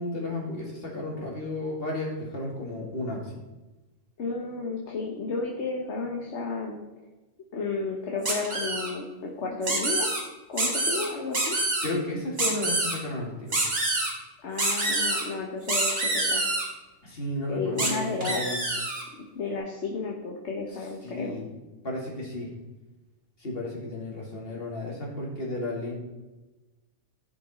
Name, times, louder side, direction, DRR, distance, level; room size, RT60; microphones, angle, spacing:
voice 1, 0.0-3.3 11.8-13.6 17.0-18.6 21.0-21.5 21.8-22.5 23.4-25.9, left 1 dB, 50° left, -2 dB, 2.6 m, -33 dB
voice 2, 4.2-6.8 7.5-10.1 10.5-11.6 14.4-16.4 17.5-18.8 19.3-21.3, left 4 dB, 70° left, 0 dB, 1.4 m, -32 dB
sound 1, 8.2-8.9 9.6-10.2 10.6-11.1 11.3-11.9 12.4-12.9 13.5-14.1 14.6-15.2 15.7-16.6 17.8-17.9 18.2-19.0, right 2 dB, 55° right, 2.1 m, -26 dB
15.0 x 5.2 x 4.3 m, 1.1 s
omnidirectional pair, 1.2 m